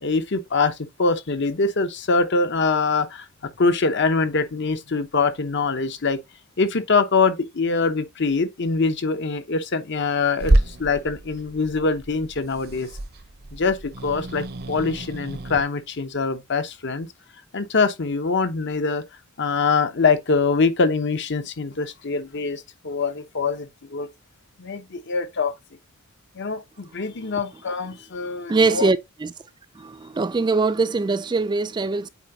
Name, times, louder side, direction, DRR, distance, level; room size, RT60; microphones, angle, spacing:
voice 1, 0.0-3.2 3.6-6.2 6.6-12.9 13.5-17.1 17.5-19.0 19.4-24.1 24.6-25.5 26.4-28.9, left 4 dB, 55° left, 0.9 m, -23 dB
Growling / Hiss, 10.4-15.6, right 1 dB, 50° right, 0.8 m, -27 dB
voice 2, 28.5-29.0 29.2-29.3 30.2-32.1, right 3 dB, 20° right, 0.3 m, -21 dB
8.2 x 4.8 x 2.7 m
head